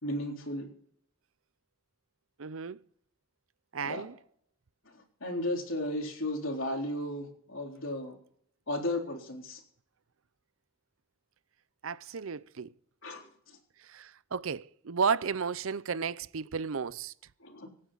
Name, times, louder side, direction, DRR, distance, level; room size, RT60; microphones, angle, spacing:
voice 1, 0.0-0.7 3.8-4.1 5.2-8.2 8.7-9.6 13.0-13.6 17.4-17.7, left 1 dB, 70° left, 3.8 m, -34 dB
voice 2, 2.4-2.8 3.7-4.1 11.8-12.7 13.8-17.1, right 6 dB, 75° right, 0.6 m, -33 dB
26.0 x 9.7 x 4.1 m
head